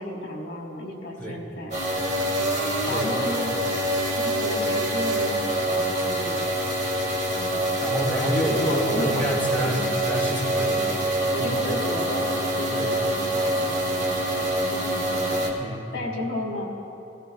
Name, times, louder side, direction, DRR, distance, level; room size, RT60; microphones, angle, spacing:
voice 1, 0.0-1.8 2.8-3.6 4.1-6.4 7.3-7.6 8.2-9.3 9.6-9.9 10.6-10.9 11.3-14.1 14.4-16.7, left 1 dB, 65° left, 0 dB, 1.9 m, -33 dB
sound 1, 1.7-15.5, right 1 dB, 40° right, 1.8 m, -25 dB
voice 2, 2.8-3.2 7.8-10.8 11.4-11.6 12.7-13.1 15.6-16.1, right 1 dB, 10° left, -4 dB, 1.9 m, -28 dB
21.0 x 14.5 x 2.3 m, 2.8 s
head